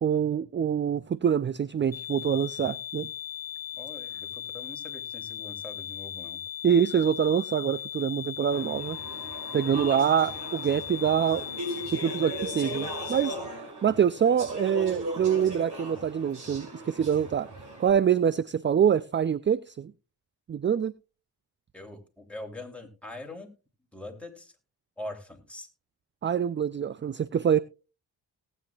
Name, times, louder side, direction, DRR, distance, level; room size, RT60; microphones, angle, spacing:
voice 1, 0.0-3.1 6.6-9.0 9.5-11.4 11.9-13.4 13.8-17.5 17.8-19.9 20.5-20.9 26.2-27.6, right 8 dB, 30° right, 0.4 m, -25 dB
sound 1, 1.9-13.3, left 11 dB, 35° left, 1.2 m, -38 dB
voice 2, 3.8-6.4 21.7-23.5 23.9-24.5 25.0-25.7, left 1 dB, 5° left, 3.2 m, -42 dB
Speech / Chatter, 8.5-17.9, right 1 dB, 65° right, 6.1 m, -38 dB
18.5 x 8.8 x 2.4 m
supercardioid pair, 55°, 42 cm